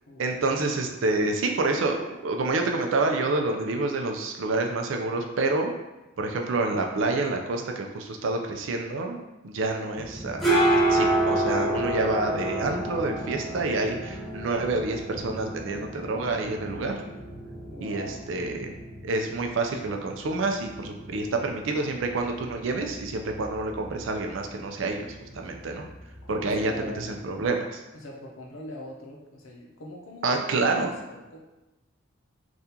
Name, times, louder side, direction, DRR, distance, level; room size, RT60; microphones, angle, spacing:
voice 1, 0.2-5.7 6.2-10.4 10.7-17.0 17.8-18.7 19.0-25.8 26.3-27.8 30.2-30.9, right 3 dB, 65° right, 3 dB, 0.4 m, -28 dB
sound 1, 10.0-27.5, right 1 dB, ahead, 0.6 m, -31 dB
voice 2, 17.6-18.3 26.2-27.1 27.9-31.4, left 1 dB, 80° left, 0 dB, 0.7 m, -41 dB
3.6 x 2.4 x 2.8 m, 1.0 s
head